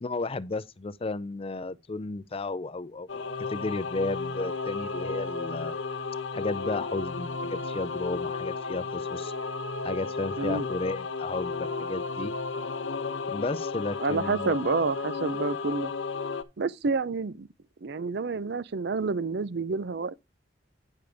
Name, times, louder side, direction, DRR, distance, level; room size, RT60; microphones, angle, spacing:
voice 1, 0.0-5.8 6.3-9.3 9.8-12.3 13.3-14.8, left 3 dB, 30° left, 0.5 m, -33 dB
Singing / Musical instrument, 3.1-16.4, left 4 dB, 80° left, 1.0 m, -33 dB
voice 2, 14.0-15.9 16.6-17.5 17.8-20.1, right 4 dB, 60° right, 0.5 m, -29 dB
9.4 x 6.7 x 3.4 m
head